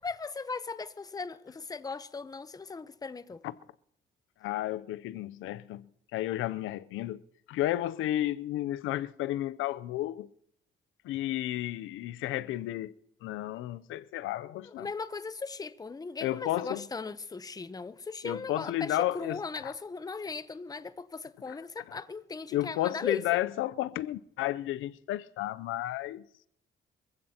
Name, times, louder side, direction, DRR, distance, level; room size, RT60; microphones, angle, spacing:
voice 1, 0.0-3.4 14.6-23.2, left 4 dB, 20° left, 0.7 m, -38 dB
voice 2, 4.4-7.2 7.5-10.3 11.0-12.9 13.2-14.9 16.2-16.8 18.2-19.7 21.5-21.6 22.5-26.2, left 14 dB, 85° left, 0.5 m, -32 dB
25.0 x 15.5 x 2.9 m
cardioid pair, 90°, 20 cm